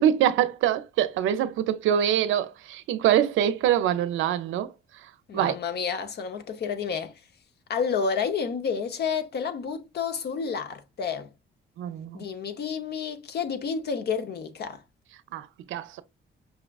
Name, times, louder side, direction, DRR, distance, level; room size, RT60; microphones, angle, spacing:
voice 1, 0.0-4.7 5.3-5.6 11.8-12.3 15.3-16.0, right 10 dB, 80° right, 0.5 m, -24 dB
voice 2, 5.3-7.2 7.7-11.3 12.1-14.8, left 6 dB, 55° left, 0.7 m, -30 dB
5.4 x 2.3 x 2.3 m
cardioid pair, 90°, 20 cm